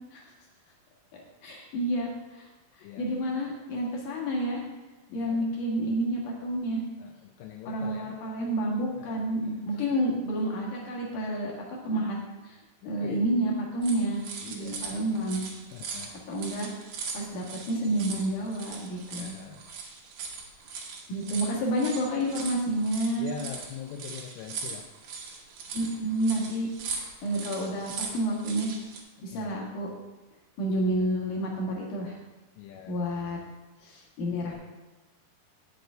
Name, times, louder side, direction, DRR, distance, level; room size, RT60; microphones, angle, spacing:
voice 1, 1.4-2.5 3.0-4.6 5.1-6.8 7.6-11.5 11.8-12.2 12.4-12.6 12.8-14.2 14.5-15.4 16.3-16.7 17.1-19.3 21.1-23.3 25.7-26.7 27.2-28.7 29.2-29.9 30.6-32.2 32.9-33.4 33.8-34.5, right 1 dB, 65° left, -2 dB, 3.1 m, -29 dB
voice 2, 5.1-5.5 7.0-8.1 9.0-9.1 9.9-10.0 12.8-13.3 14.4-14.8 15.7-16.1 19.2-19.6 23.2-24.9 29.3-29.6 32.6-33.0, left 8 dB, 80° left, 2 dB, 2.1 m, -42 dB
sound 1, 13.8-29.0, right 5 dB, 60° right, 2.1 m, -40 dB
9.2 x 7.7 x 3.9 m, 1.1 s
omnidirectional pair, 4.1 m